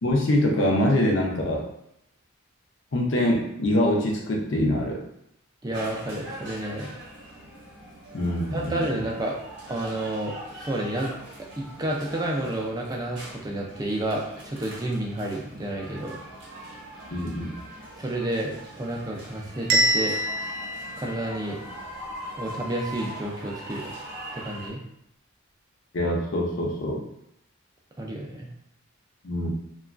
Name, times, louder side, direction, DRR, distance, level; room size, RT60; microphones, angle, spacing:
voice 1, 0.0-1.6 2.9-5.0 8.1-9.0 17.1-17.5 25.9-27.0 29.2-29.5, left 1 dB, 60° left, 0 dB, 0.5 m, -24 dB
voice 2, 5.6-6.9 8.5-9.4 9.7-10.3 10.6-11.1 11.6-16.2 18.0-20.2 21.0-21.6 22.4-23.9 24.3-24.8 28.0-28.5, right 1 dB, 20° right, -1 dB, 0.3 m, -30 dB
sound 1, 5.7-24.7, right 1 dB, 55° right, 0.8 m, -42 dB
Bell, 19.7-21.7, right 1 dB, 85° right, 0.5 m, -26 dB
2.9 x 2.3 x 2.4 m, 0.77 s
head